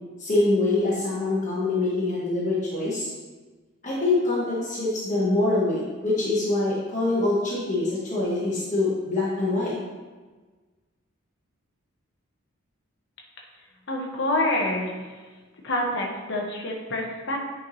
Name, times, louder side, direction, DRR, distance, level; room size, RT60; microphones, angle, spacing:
voice 1, 0.2-3.1 3.8-9.7, left 2 dB, 35° left, -6 dB, 1.4 m, -24 dB
voice 2, 13.9-15.1 15.6-17.4, left 1 dB, 55° left, -1 dB, 1.1 m, -27 dB
8.6 x 4.6 x 3.2 m, 1.3 s
head